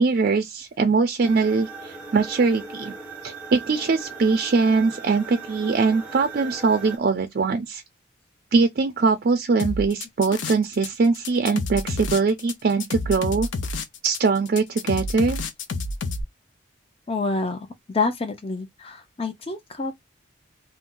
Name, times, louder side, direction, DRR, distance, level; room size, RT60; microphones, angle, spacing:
voice 1, 0.0-2.9 3.2-7.8 8.5-13.5 14.0-15.4, right 4 dB, 50° right, 0.4 m, -22 dB
sound 1, 1.2-7.0, right 4 dB, 5° right, 0.8 m, -38 dB
sound 2, 9.6-10.9 11.1-16.2, left 3 dB, 75° left, 0.5 m, -29 dB
voice 2, 17.1-19.9, left 3 dB, 30° left, 0.5 m, -28 dB
2.5 x 2.1 x 3.7 m
head